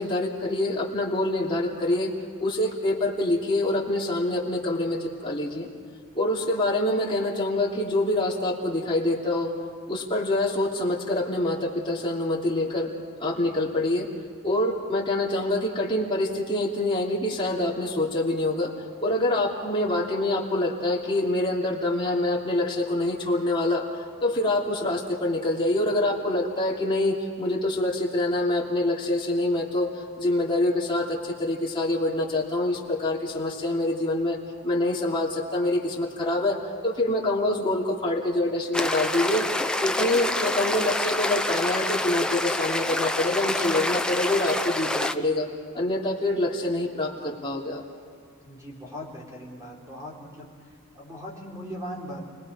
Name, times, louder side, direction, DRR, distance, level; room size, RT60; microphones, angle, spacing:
voice 1, 0.0-2.1 2.4-5.7 6.1-9.5 9.9-12.9 13.2-14.1 14.4-18.7 19.0-23.8 24.2-29.9 30.2-36.6 36.8-39.5 39.8-45.5 45.7-47.8, left 1 dB, 20° left, -3 dB, 2.9 m, -25 dB
sound 1, 38.7-45.1, left 1 dB, 5° left, 0.5 m, -27 dB
voice 2, 48.4-50.7 50.9-52.2, equal, 15° right, -2 dB, 4.1 m, -39 dB
29.5 x 20.5 x 5.0 m, 2.3 s
head